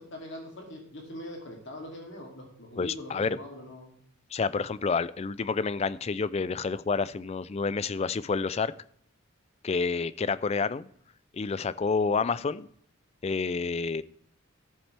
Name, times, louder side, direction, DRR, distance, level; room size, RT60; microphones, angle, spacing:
voice 1, 0.0-3.9, left 1 dB, 60° left, 1 dB, 2.6 m, -42 dB
voice 2, 2.8-3.4 4.3-8.7 9.6-10.9 11.3-12.7 13.2-14.0, left 4 dB, 30° left, 17 dB, 0.3 m, -29 dB
13.5 x 7.3 x 3.3 m, 0.65 s
head